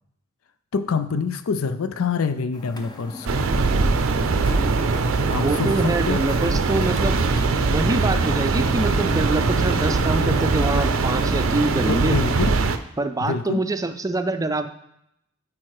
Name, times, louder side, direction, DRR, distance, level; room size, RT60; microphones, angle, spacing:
voice 1, 0.7-3.3 5.3-6.2 11.9-12.5 13.2-13.6, left 5 dB, 85° left, 11 dB, 0.5 m, -26 dB
sound 1, 2.5-12.7, left 1 dB, 20° left, 0.7 m, -34 dB
sound 2, 3.3-12.8, right 4 dB, 70° right, 0.5 m, -22 dB
voice 2, 5.3-7.2 7.6-12.2 13.0-14.7, right 2 dB, 15° right, 9 dB, 0.4 m, -25 dB
8.8 x 4.3 x 4.8 m, 0.77 s
head